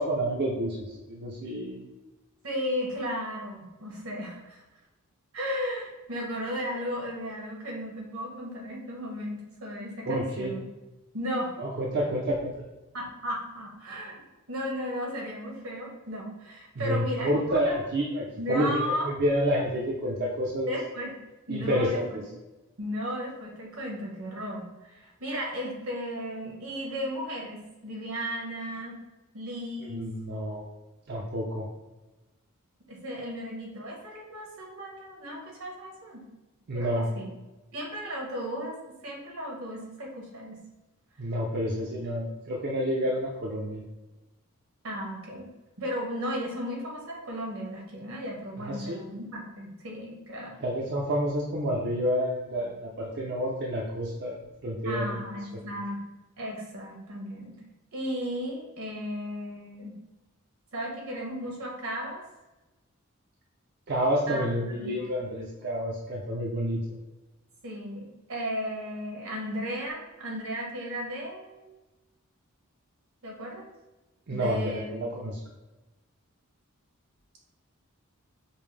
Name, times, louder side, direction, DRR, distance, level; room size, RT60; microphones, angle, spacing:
voice 1, 0.0-1.8 10.1-10.5 11.6-12.5 16.8-20.7 21.5-22.1 29.8-30.6 31.1-31.7 36.7-37.1 41.2-43.8 48.6-49.0 50.6-55.2 55.5-55.6 63.9-67.0 74.3-75.4, equal, 50° right, -2 dB, 0.5 m, -29 dB
voice 2, 2.4-4.6 5.3-10.6 11.1-11.5 12.9-14.2 14.5-17.8 18.4-19.1 20.7-21.1 21.5-22.2 22.8-29.0 29.3-30.1 32.9-36.2 36.7-37.3 37.7-38.8 39.0-40.6 44.8-45.5 45.8-50.5 54.8-56.0 56.4-57.6 57.9-59.9 60.7-62.2 64.3-65.0 67.6-71.7 73.2-73.7 74.3-75.1, equal, 80° right, -1 dB, 1.2 m, -35 dB
5.2 x 2.0 x 3.2 m, 1.1 s
head